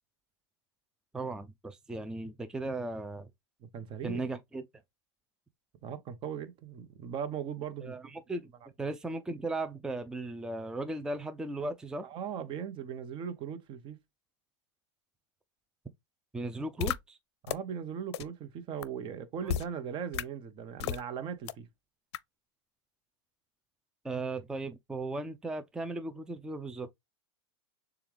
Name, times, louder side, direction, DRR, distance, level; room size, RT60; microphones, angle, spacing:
voice 1, 1.1-3.3 4.0-4.6 7.8-8.5 8.8-12.1 16.3-17.2 19.4-19.5 24.0-26.9, right 2 dB, 5° right, 0.4 m, -36 dB
voice 2, 3.6-4.2 5.8-8.0 12.0-14.0 17.4-21.7, right 7 dB, 35° right, 0.9 m, -39 dB
sound 1, 16.8-17.0 17.5-17.6 18.1-18.2 18.8-18.9 19.5-19.7 20.1-20.2 20.8-21.0 21.5-21.6 22.1-22.2, left 10 dB, 65° left, 0.5 m, -31 dB
6.8 x 2.4 x 3.3 m
hypercardioid pair, 115°, 15 cm